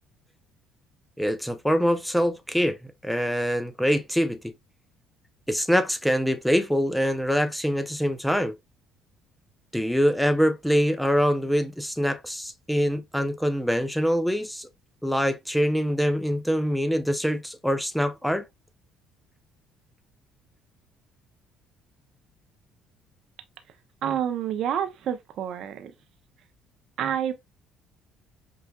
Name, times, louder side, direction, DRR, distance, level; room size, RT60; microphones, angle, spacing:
voice 1, 1.2-2.8 3.0-4.4 5.5-8.5 9.7-14.7 15.0-18.4, equal, ahead, 0.6 m, -24 dB
voice 2, 24.0-25.9 27.0-27.3, right 9 dB, 65° right, 0.6 m, -28 dB
5.5 x 2.5 x 2.3 m
supercardioid pair, 85°, 0 cm